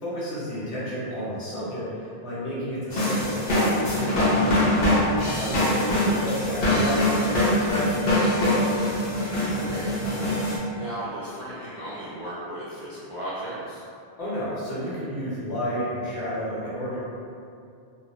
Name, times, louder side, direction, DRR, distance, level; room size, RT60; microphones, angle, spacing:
voice 1, 0.0-4.9 5.4-8.7 14.2-17.0, equal, 85° left, -9 dB, 1.1 m, -31 dB
sound 1, 2.9-10.6, left 1 dB, 65° left, 0.9 m, -23 dB
voice 2, 9.5-13.8, right 1 dB, 60° right, -11 dB, 0.3 m, -36 dB
2.5 x 2.1 x 2.9 m, 2.5 s
omnidirectional pair, 1.1 m